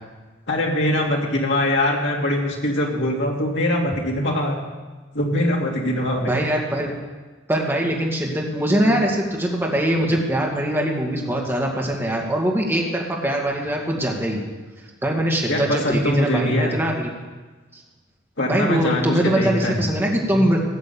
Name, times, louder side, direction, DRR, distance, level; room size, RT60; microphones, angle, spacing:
voice 1, 0.5-4.6 5.1-6.3 15.5-16.8 18.4-19.9, left 1 dB, 60° left, -1 dB, 2.6 m, -22 dB
voice 2, 6.2-6.9 7.5-14.4 15.0-17.1 17.7-17.8 18.5-20.6, right 1 dB, 10° right, -2 dB, 2.2 m, -22 dB
17.0 x 7.4 x 7.2 m, 1.3 s
head